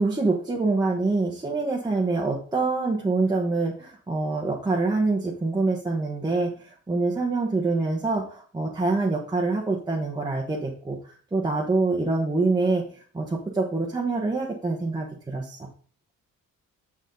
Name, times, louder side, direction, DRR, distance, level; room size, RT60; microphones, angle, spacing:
voice 1, 0.0-11.0 11.3-15.6, right 3 dB, 10° right, -2 dB, 1.2 m, -25 dB
9.2 x 7.1 x 3.9 m, 0.43 s
cardioid pair, 170°, 34 cm